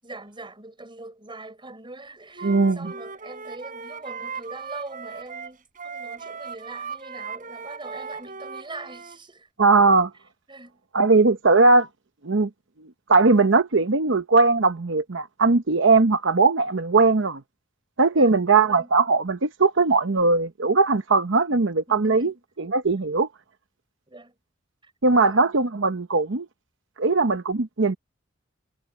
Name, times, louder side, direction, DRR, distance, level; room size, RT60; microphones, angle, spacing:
voice 1, 0.0-9.5 10.5-10.8 18.1-18.9 21.9-22.4 24.1-24.3 24.8-24.9 25.2-25.5, right 2 dB, 25° right, 6.0 m, -42 dB
Wind instrument woodwind instrument, 2.3-9.2, right 5 dB, 45° right, 5.2 m, -38 dB
voice 2, 2.4-2.9 9.6-10.1 10.9-11.9 12.2-12.5 13.1-17.4 18.0-22.3 22.6-23.3 25.0-26.5 27.0-28.0, right 3 dB, 65° right, 0.9 m, -19 dB
head